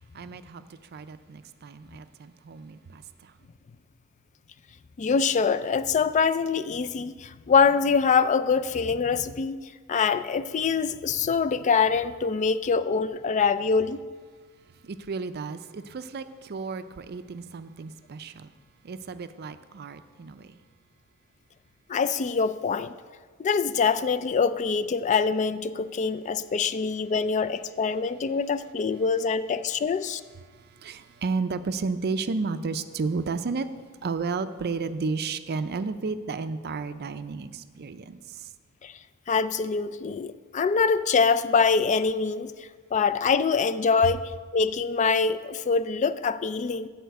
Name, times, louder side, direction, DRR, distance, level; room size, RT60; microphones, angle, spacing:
voice 1, 0.1-0.6 0.9-3.3 14.8-18.5 18.8-20.6 30.5-33.7 34.0-38.5, right 4 dB, 50° right, 11 dB, 0.5 m, -33 dB
voice 2, 5.0-9.6 9.9-14.0 21.9-22.9 23.4-30.2 38.8-39.0 39.3-46.9, left 5 dB, 35° left, 14 dB, 0.3 m, -24 dB
11.0 x 4.3 x 8.0 m, 1.5 s
head